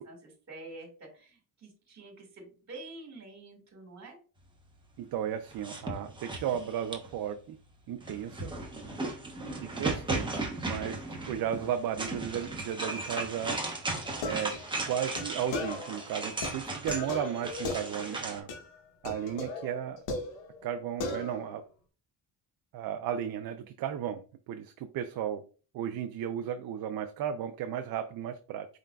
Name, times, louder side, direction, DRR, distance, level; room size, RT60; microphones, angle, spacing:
voice 1, 0.0-4.2, right 2 dB, 40° right, 3 dB, 1.9 m, -48 dB
voice 2, 5.0-7.6 7.9-8.5 9.7-13.6 14.2-14.5 14.8-18.5 19.0-20.0 20.6-21.6 22.7-25.4 25.7-28.7, right 9 dB, 55° right, 7 dB, 0.5 m, -34 dB
sound 1, 5.5-7.2 8.0-18.4, right 2 dB, 10° right, 0.9 m, -36 dB
sound 2, 14.0-16.0 16.4-18.2 18.5-18.8 19.0-20.7 21.0-21.6, left 3 dB, 85° left, 0.9 m, -38 dB
4.8 x 3.7 x 2.2 m, 0.37 s
cardioid pair, 135°, 44 cm